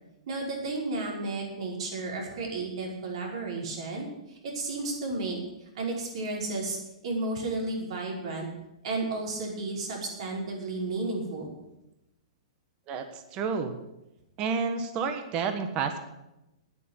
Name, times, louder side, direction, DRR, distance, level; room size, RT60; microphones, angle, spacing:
voice 1, 0.3-6.8 7.0-8.5 8.8-11.5, right 2 dB, 55° right, 0 dB, 5.3 m, -33 dB
voice 2, 12.9-13.8 14.4-16.0, right 5 dB, 25° right, 8 dB, 1.4 m, -30 dB
10.0 x 9.7 x 9.8 m, 0.92 s
hypercardioid pair, 160°, 4 cm